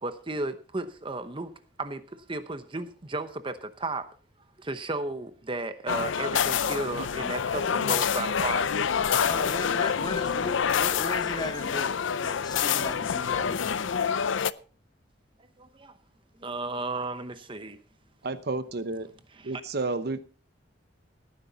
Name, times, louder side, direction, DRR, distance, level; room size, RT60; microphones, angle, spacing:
voice 1, 0.0-1.5 1.8-2.0 2.3-4.1 4.6-8.8 12.3-12.4 15.6-16.0 16.4-17.8 19.3-19.6, right 2 dB, 25° right, 0.9 m, -34 dB
sound 1, 5.9-14.5, left 7 dB, 80° left, 0.5 m, -27 dB
voice 2, 9.3-11.9 12.2-13.8, left 2 dB, 20° left, 1.5 m, -36 dB
voice 3, 18.2-19.1 19.4-20.2, right 3 dB, 55° right, 0.8 m, -31 dB
17.5 x 9.8 x 4.0 m
head